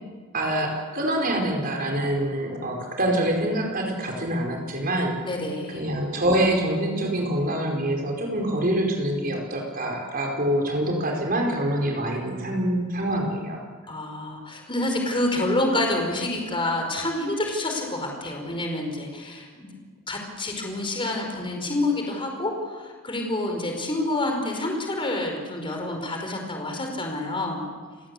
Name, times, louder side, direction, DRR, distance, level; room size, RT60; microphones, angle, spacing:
voice 1, 0.3-5.2 5.7-13.6, right 1 dB, 40° right, 1 dB, 4.8 m, -25 dB
voice 2, 5.2-5.8 13.9-19.7 20.1-27.6, left 1 dB, 25° left, 2 dB, 4.8 m, -28 dB
29.5 x 18.0 x 8.5 m, 1.5 s
head